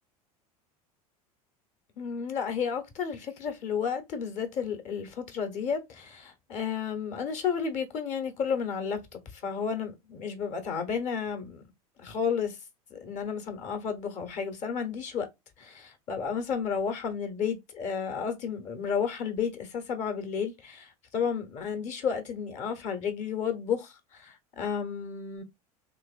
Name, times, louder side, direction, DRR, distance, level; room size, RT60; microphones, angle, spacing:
voice 1, 2.0-11.6 12.0-12.5 12.9-15.3 15.6-20.9 21.1-23.9 24.2-25.4, left 6 dB, 40° left, 1.0 m, -32 dB
3.3 x 2.9 x 2.3 m
figure-of-eight pair, 75°, 19 cm